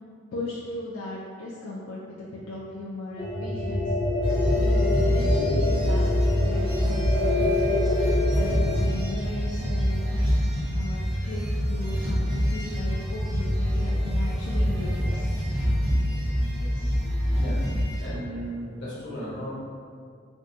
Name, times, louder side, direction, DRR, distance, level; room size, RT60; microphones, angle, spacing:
voice 1, 0.3-3.9 4.5-6.1 6.3-7.6 8.3-11.4 11.7-15.3 16.6-16.9, left 2 dB, 85° left, -7 dB, 0.4 m, -37 dB
sound 1, 3.2-8.8, left 2 dB, 25° left, 0.5 m, -26 dB
sound 2, 4.2-18.1, equal, 90° right, 0.9 m, -25 dB
voice 2, 17.3-17.7 18.0-19.5, equal, 60° left, -8 dB, 1.0 m, -35 dB
3.5 x 2.2 x 2.6 m, 2.2 s
head